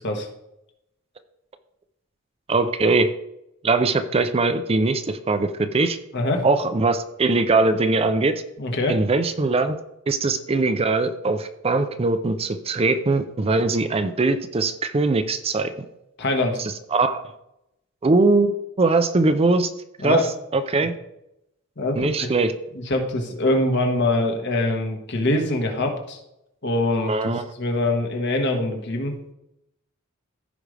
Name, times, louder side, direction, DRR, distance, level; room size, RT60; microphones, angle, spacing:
voice 1, 2.5-3.1 3.6-6.0 6.4-8.4 8.9-9.8 10.1-15.7 16.6-17.2 18.0-19.7 20.0-20.3 20.5-20.9 22.0-22.5 27.1-27.5, right 3 dB, 30° right, 9 dB, 0.5 m, -21 dB
voice 2, 6.1-6.4 8.6-9.0 16.2-16.6 20.0-20.2 21.8-22.3 22.9-26.2 26.6-29.1, left 2 dB, 55° left, 3 dB, 1.6 m, -23 dB
15.0 x 5.1 x 3.3 m, 0.83 s
head